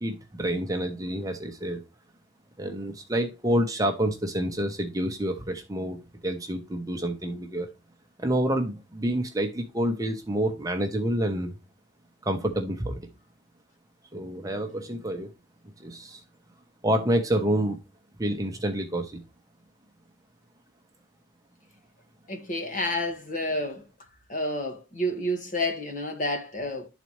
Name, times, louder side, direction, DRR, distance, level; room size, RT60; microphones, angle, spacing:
voice 1, 0.0-1.8 2.6-7.7 8.2-11.5 12.2-13.0 14.1-15.3 15.8-16.2 16.8-17.8 18.2-19.2, right 1 dB, 15° right, 0.8 m, -28 dB
voice 2, 22.3-23.8 24.3-26.9, left 1 dB, 40° left, 1.4 m, -29 dB
11.5 x 4.1 x 3.0 m
head